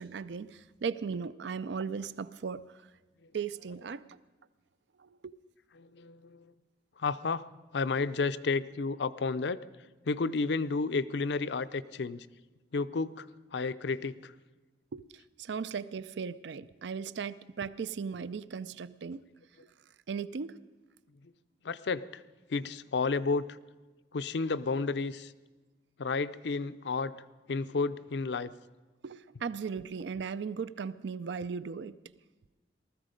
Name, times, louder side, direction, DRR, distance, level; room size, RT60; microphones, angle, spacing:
voice 1, 0.0-2.8 3.3-4.2 5.0-5.3 14.9-19.3 20.1-20.6 29.0-31.9, right 6 dB, 80° right, 0.4 m, -37 dB
voice 2, 5.8-6.5 7.0-7.4 7.7-9.6 10.1-12.3 12.7-13.3 13.5-14.3 21.6-22.2 22.5-23.6 24.1-25.3 26.0-27.2 27.5-28.5, left 4 dB, 75° left, 0.5 m, -31 dB
19.5 x 13.5 x 5.1 m
head